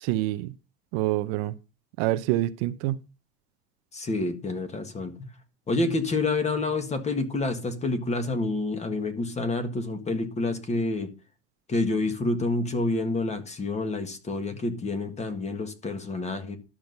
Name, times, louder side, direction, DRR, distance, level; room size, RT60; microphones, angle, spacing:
voice 1, 0.0-0.5 0.9-1.5 2.0-3.0, right 16 dB, 60° right, 0.8 m, -26 dB
voice 2, 3.9-5.1 5.7-11.1 11.7-16.6, left 2 dB, 20° left, 1.7 m, -28 dB
12.0 x 6.4 x 5.4 m
supercardioid pair, 140°, 36 cm